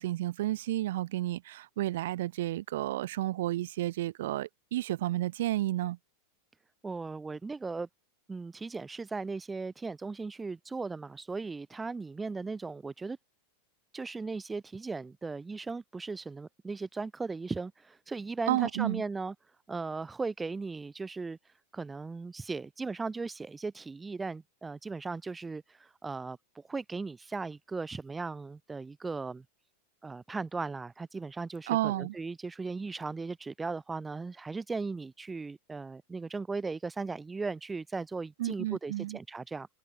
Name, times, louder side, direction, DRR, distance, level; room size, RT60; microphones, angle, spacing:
voice 1, 0.0-6.0 18.5-19.0 31.7-32.1 38.4-39.2, right 15 dB, 70° right, 4.3 m, -31 dB
voice 2, 6.8-7.9 8.3-13.2 13.9-19.3 19.7-21.4 21.7-29.4 30.0-39.7, right 4 dB, 15° right, 4.5 m, -37 dB
hypercardioid pair, 110°, 0 cm